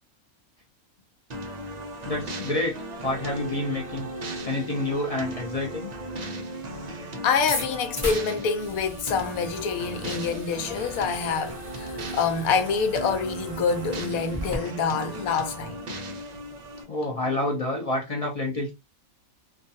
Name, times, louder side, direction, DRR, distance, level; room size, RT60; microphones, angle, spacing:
sound 1, 1.3-16.8, right 1 dB, 70° right, 0.4 m, -36 dB
voice 1, 2.0-4.1 4.4-5.9 16.9-18.7, left 2 dB, 55° left, 0.4 m, -28 dB
voice 2, 7.2-15.8, left 5 dB, 85° left, 1.0 m, -26 dB
sound 2, 7.5-14.6, left 1 dB, 15° left, 1.0 m, -38 dB
2.4 x 2.3 x 2.7 m
omnidirectional pair, 1.5 m